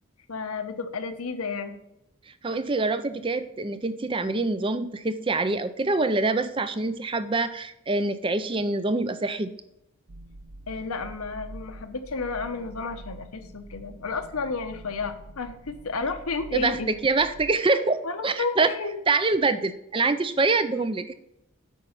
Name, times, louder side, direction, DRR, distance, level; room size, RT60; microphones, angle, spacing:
voice 1, 0.3-1.8 10.7-16.9 18.0-19.0, left 4 dB, 85° left, 8 dB, 1.0 m, -32 dB
voice 2, 2.3-9.5 16.5-18.7 19.1-21.1, right 3 dB, 25° right, 12 dB, 0.4 m, -25 dB
sound 1, 10.1-17.6, right 1 dB, 65° right, 0.7 m, -45 dB
8.3 x 5.3 x 5.7 m, 0.85 s
head